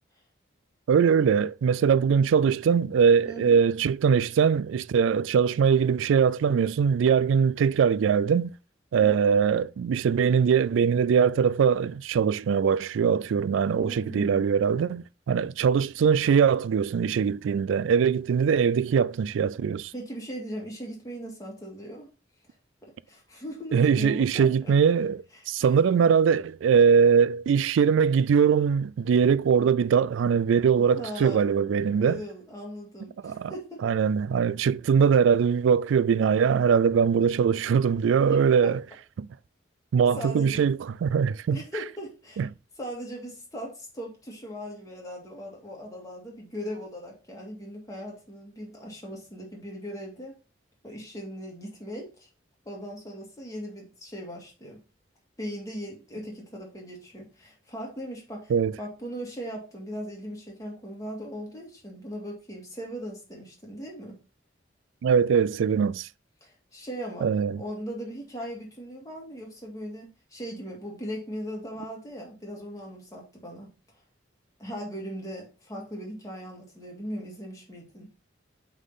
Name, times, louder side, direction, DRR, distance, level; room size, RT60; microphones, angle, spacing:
voice 1, 0.9-8.5 8.9-19.9 23.7-25.2 25.5-32.2 33.2-33.5 33.8-38.8 39.2-39.3 39.9-41.6 42.4-42.5 58.5-58.7 65.0-66.1 67.2-67.6, right 6 dB, 85° right, 0.3 m, -22 dB
voice 2, 3.2-3.6 13.5-14.5 19.9-22.1 23.1-24.7 30.9-31.5 31.9-33.8 38.3-38.7 40.1-40.6 41.5-42.5 42.8-50.3 50.8-52.3 52.7-54.8 55.4-64.2 66.4-67.3 67.6-73.7 74.6-78.1, equal, 20° left, 2.0 m, -39 dB
8.2 x 3.7 x 4.0 m
head